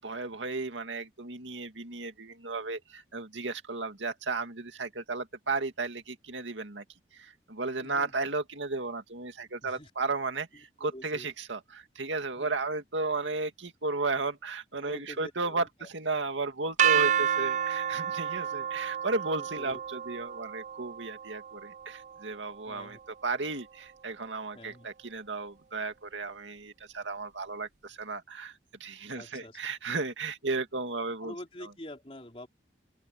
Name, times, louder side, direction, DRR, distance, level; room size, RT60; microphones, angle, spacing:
voice 1, 0.0-6.8 7.1-15.7 15.9-31.3, right 3 dB, 90° right, 2.3 m, -34 dB
voice 2, 7.8-8.1 9.6-9.9 10.9-11.3 12.4-12.6 14.8-15.9 17.0-17.1 19.4-19.8 22.7-23.0 24.5-24.9 29.1-29.6 31.2-32.5, left 1 dB, 30° left, 4.0 m, -46 dB
sound 1, 16.8-22.7, right 9 dB, 40° right, 0.5 m, -30 dB
open air
head